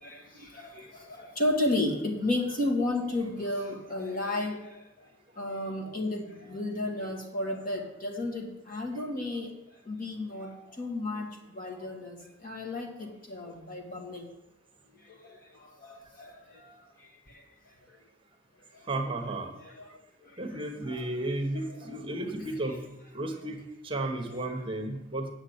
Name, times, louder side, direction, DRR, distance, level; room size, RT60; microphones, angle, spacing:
voice 1, 0.0-4.7 5.4-9.5 9.9-10.5 10.8-12.2 12.4-14.3 15.2-15.3 15.8-16.3 19.2-19.3 19.6-19.8 20.9-21.0 21.7-22.0 22.4-22.8 24.3-24.4, left 2 dB, 45° left, 0 dB, 2.0 m, -33 dB
voice 2, 18.9-19.5 20.4-22.8 23.1-25.3, right 2 dB, 25° right, 3 dB, 1.2 m, -33 dB
9.2 x 6.5 x 8.1 m, 0.94 s
head